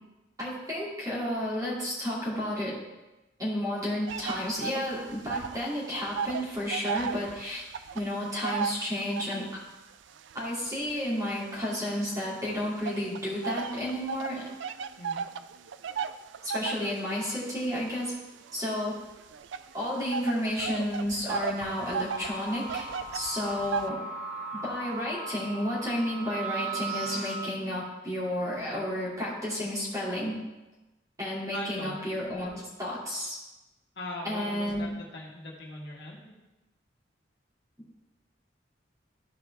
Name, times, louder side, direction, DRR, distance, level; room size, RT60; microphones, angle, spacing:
voice 1, 0.4-2.8 3.4-7.6 7.9-9.5 10.3-14.5 16.4-18.1 18.5-19.0 19.7-24.0 24.6-30.4 31.2-33.4 34.2-34.9, left 1 dB, 20° right, -7 dB, 2.5 m, -32 dB
sound 1, 4.1-5.6 5.9-9.6 10.2-12.2 12.8-23.9, right 6 dB, 85° right, 0.4 m, -36 dB
sound 2, 21.6-27.3, right 3 dB, 40° right, 1.2 m, -38 dB
voice 2, 31.5-32.0 33.9-36.3, left 1 dB, 65° left, -2 dB, 1.6 m, -40 dB
13.0 x 4.7 x 3.4 m, 1.1 s
head